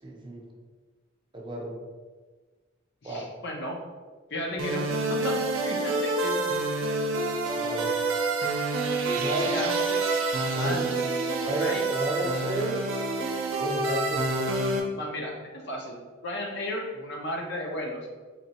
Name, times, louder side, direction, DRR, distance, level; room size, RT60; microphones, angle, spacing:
voice 1, 0.0-0.5 1.3-1.8 3.0-3.3 7.6-7.9 9.1-9.6 10.5-10.9 11.4-12.8 13.6-14.6, right 1 dB, 25° right, -1 dB, 0.6 m, -32 dB
voice 2, 3.0-3.8 4.3-6.4 9.2-10.0 10.5-11.1 11.6-11.9 12.3-12.4 14.9-18.1, left 1 dB, 60° left, 0 dB, 0.7 m, -34 dB
sound 1, 4.6-14.8, right 3 dB, 75° right, 0.6 m, -28 dB
4.3 x 3.1 x 2.9 m, 1.4 s
head